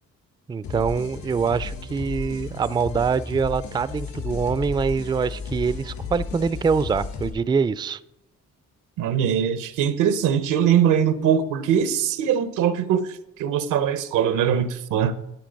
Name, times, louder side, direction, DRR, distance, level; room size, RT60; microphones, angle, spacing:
voice 1, 0.5-8.0, right 5 dB, 15° right, 17 dB, 0.3 m, -24 dB
sound 1, 0.6-7.3, left 5 dB, 70° left, 3.6 m, -34 dB
voice 2, 9.0-15.1, right 8 dB, 85° right, 13 dB, 0.9 m, -22 dB
12.0 x 8.5 x 5.2 m, 0.91 s
cardioid pair, 90°, 30 cm